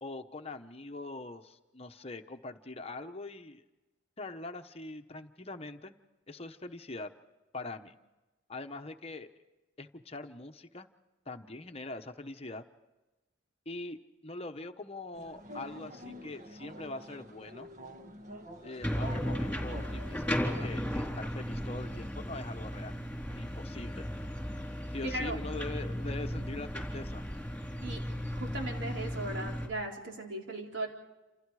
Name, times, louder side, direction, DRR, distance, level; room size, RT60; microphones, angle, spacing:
voice 1, 0.0-3.6 4.2-5.9 6.3-7.1 7.5-7.9 8.5-9.3 9.8-10.9 11.3-12.6 13.7-17.7 18.6-23.0 23.3-24.0 24.9-27.2, left 2 dB, 30° left, 6 dB, 1.0 m, -43 dB
sound 1, 15.1-20.7, equal, 40° right, 1.7 m, -47 dB
sound 2, 18.8-29.7, equal, 5° left, 3.9 m, -35 dB
voice 2, 25.0-25.4 27.8-28.0 28.3-30.9, right 1 dB, 75° right, 0 dB, 4.1 m, -37 dB
28.5 x 28.0 x 4.9 m, 1.1 s
head